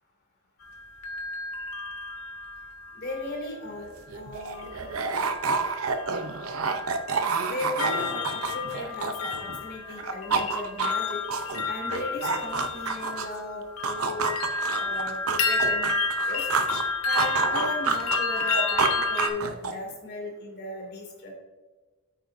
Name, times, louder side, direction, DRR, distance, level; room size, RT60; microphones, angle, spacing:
sound 1, 0.6-3.4 4.5-4.9 5.2-19.3, left 4 dB, 75° left, 1.2 m, -31 dB
voice 1, 2.9-4.7 7.5-11.2 11.7-14.3 14.7-15.9 16.3-16.5 17.0-21.3, left 2 dB, 45° left, 0 dB, 2.7 m, -36 dB
sound 2, 3.8-3.9 4.1-9.6 9.9-13.4 13.8-16.8 17.2-19.9, right 5 dB, 70° right, 0.7 m, -29 dB
9.1 x 8.8 x 2.7 m, 1.3 s
head